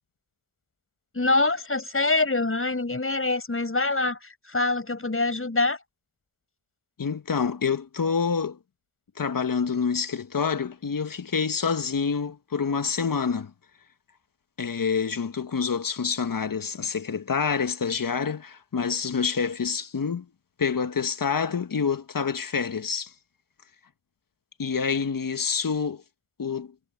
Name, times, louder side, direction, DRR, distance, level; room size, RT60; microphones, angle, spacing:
voice 1, 1.1-5.8, left 3 dB, 25° left, 6.9 m, -25 dB
voice 2, 7.0-8.6 9.2-13.5 14.6-20.3 20.6-23.1 24.6-26.0 26.4-26.7, left 6 dB, 40° left, 1.6 m, -27 dB
supercardioid pair, 55°, 49 cm